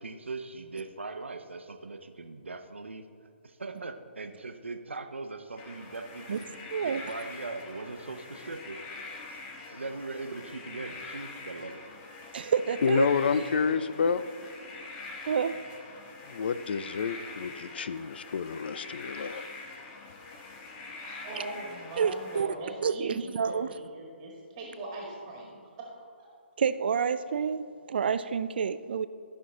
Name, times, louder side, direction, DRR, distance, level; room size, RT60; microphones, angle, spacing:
voice 1, 0.0-3.1 3.4-6.5 6.8-8.8 9.3-9.4 9.7-11.8, right 3 dB, 80° right, 7 dB, 0.8 m, -40 dB
sound 1, 5.6-22.4, left 3 dB, 25° left, 1.0 m, -44 dB
voice 2, 6.7-7.0 12.3-13.1 15.3-15.6 22.0-22.5 22.8-23.7 26.6-29.1, right 6 dB, 55° right, 13 dB, 0.4 m, -28 dB
voice 3, 12.8-14.2 16.3-19.5, left 5 dB, 60° left, 14 dB, 0.4 m, -29 dB
voice 4, 21.0-26.3, right 2 dB, 30° right, -2 dB, 1.6 m, -41 dB
13.5 x 5.7 x 3.7 m, 2.3 s
figure-of-eight pair, 135°, 6 cm